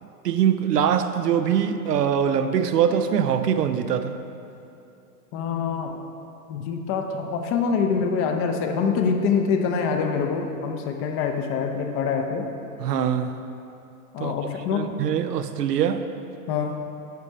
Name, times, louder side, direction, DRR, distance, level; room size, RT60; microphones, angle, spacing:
voice 1, 0.0-4.2 12.8-13.4 14.2-16.1, right 8 dB, 90° right, 9 dB, 0.7 m, -23 dB
voice 2, 5.3-6.0 6.5-12.5 14.1-14.8 16.5-16.9, left 5 dB, 30° left, 5 dB, 0.7 m, -25 dB
10.5 x 4.2 x 6.1 m, 2.7 s
hypercardioid pair, 125°, 47 cm